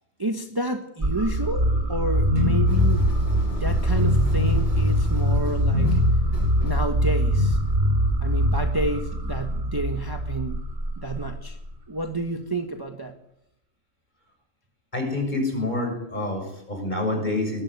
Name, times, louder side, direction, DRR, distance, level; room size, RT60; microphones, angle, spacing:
voice 1, 0.2-3.1 3.6-6.1 6.6-7.6 8.2-10.6 11.0-11.6 11.9-13.1, right 2 dB, 15° right, 6 dB, 1.4 m, -30 dB
sound 1, 1.0-11.9, equal, 40° right, 2.9 m, -22 dB
sound 2, 2.7-7.8, left 2 dB, 60° left, 7.3 m, -41 dB
voice 2, 14.9-17.6, left 2 dB, 35° left, 3 dB, 7.0 m, -27 dB
20.5 x 15.0 x 9.6 m, 0.81 s
omnidirectional pair, 1.4 m